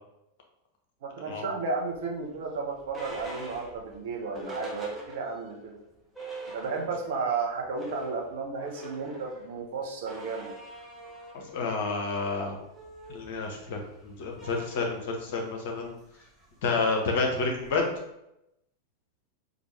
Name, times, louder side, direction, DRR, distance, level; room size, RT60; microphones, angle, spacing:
voice 1, 1.0-5.8 6.5-10.5, right 4 dB, 55° right, 0 dB, 0.8 m, -33 dB
sound 1, 1.9-5.6 5.9-6.0 6.1-7.2 7.5-18.0, right 2 dB, 5° right, 0.9 m, -45 dB
voice 2, 11.3-12.6 13.1-15.9 16.6-17.8, left 4 dB, 50° left, 2 dB, 0.8 m, -29 dB
4.5 x 2.5 x 3.2 m, 0.85 s
figure-of-eight pair, 90°, 0 cm